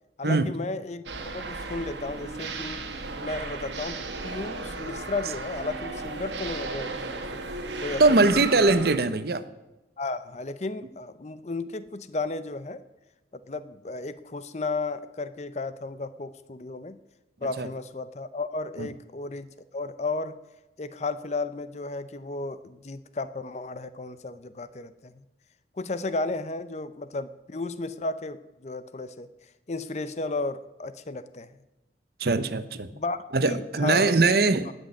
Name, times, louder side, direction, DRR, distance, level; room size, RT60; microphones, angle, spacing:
voice 1, 0.2-1.0 1.3-2.9 3.2-7.4 7.8-8.8 10.0-12.8 13.5-17.0 17.4-19.5 19.7-20.4 20.8-25.2 25.8-29.3 29.7-31.6 32.9-34.2 34.7-34.8, left 3 dB, 40° left, 0.6 m, -34 dB
sound 1, 1.1-9.0, right 3 dB, 90° right, 1.6 m, -35 dB
voice 2, 8.0-9.4 17.6-17.7 18.8-18.9 32.2-32.9 33.3-34.7, right 3 dB, 60° right, 0.8 m, -21 dB
17.5 x 6.4 x 8.5 m
head